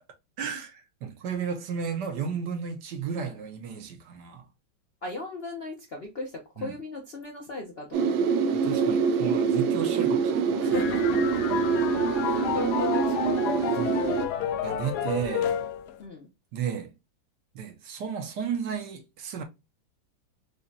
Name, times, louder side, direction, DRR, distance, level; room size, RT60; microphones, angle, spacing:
voice 1, 0.4-4.4 6.6-6.7 8.5-10.8 11.5-11.6 13.8-14.1 14.6-15.5 16.5-16.9 17.5-19.4, right 7 dB, 70° right, 1.3 m, -33 dB
voice 2, 5.0-8.3 10.6-11.2 12.0-14.3 16.0-16.3, left 2 dB, 55° left, 0.6 m, -37 dB
sound 1, 7.9-14.3, right 5 dB, 90° right, 1.4 m, -25 dB
sound 2, 10.7-16.0, left 9 dB, 75° left, 1.0 m, -31 dB
5.0 x 2.2 x 2.6 m
omnidirectional pair, 2.1 m